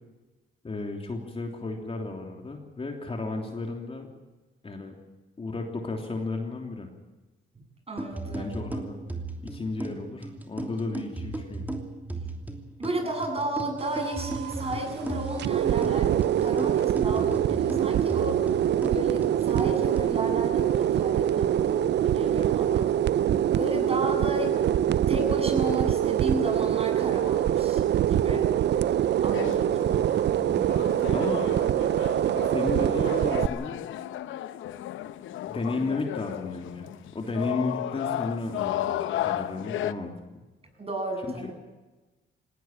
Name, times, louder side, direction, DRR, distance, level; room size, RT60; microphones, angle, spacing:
voice 1, 0.6-4.1 4.6-4.9 5.4-6.9 8.3-9.0 9.4-11.7 29.3-29.7 30.3-31.4 32.5-33.8 35.4-40.1 41.2-41.5, left 3 dB, 30° left, 2 dB, 3.2 m, -33 dB
voice 2, 7.9-8.5 12.8-18.4 18.9-22.9 23.5-24.6 25.1-28.5 29.2-29.8 40.8-41.4, right 1 dB, 30° right, 3 dB, 8.0 m, -33 dB
sound 1, 8.0-20.0, right 2 dB, 10° right, 3.0 m, -36 dB
sound 2, 13.8-33.5, right 11 dB, 60° right, 0.6 m, -24 dB
sound 3, 29.0-39.9, left 12 dB, 80° left, 0.9 m, -34 dB
18.5 x 18.5 x 9.0 m, 1.2 s
cardioid pair, 90°, 20 cm